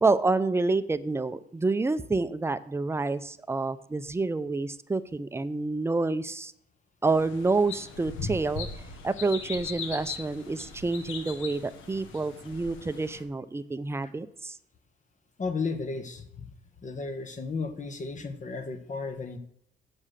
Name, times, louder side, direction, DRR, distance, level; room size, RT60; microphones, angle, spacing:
voice 1, 0.0-6.5 7.0-8.7 9.0-14.6, right 3 dB, 15° right, 12 dB, 0.5 m, -28 dB
sound 1, 7.0-13.2, left 4 dB, 85° left, 1.5 m, -39 dB
voice 2, 15.4-16.5 16.8-19.4, left 4 dB, 40° left, 8 dB, 1.3 m, -34 dB
7.3 x 6.2 x 6.7 m, 0.70 s
cardioid pair, 90°, 20 cm